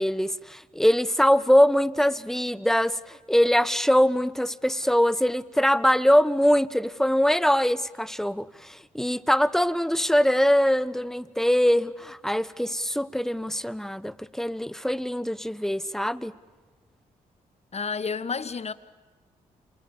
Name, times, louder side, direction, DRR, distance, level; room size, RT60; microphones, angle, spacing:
voice 1, 0.0-16.3, equal, ahead, 1.2 m, -23 dB
voice 2, 17.7-18.7, left 5 dB, 40° left, 1.5 m, -30 dB
28.0 x 27.5 x 7.3 m
hypercardioid pair, 45°, 17 cm